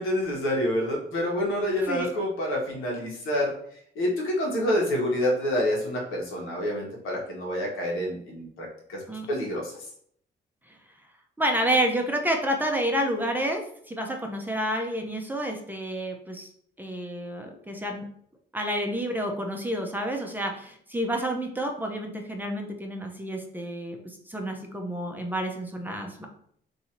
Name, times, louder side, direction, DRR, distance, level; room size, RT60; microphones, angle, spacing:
voice 1, 0.0-3.5 3.9-9.0 9.3-9.7, left 1 dB, 85° left, -2 dB, 1.3 m, -27 dB
voice 2, 11.4-16.5 16.8-18.1 18.5-26.3, right 1 dB, 10° right, 2 dB, 0.6 m, -29 dB
2.8 x 2.6 x 4.3 m, 0.64 s
cardioid pair, 90°, 20 cm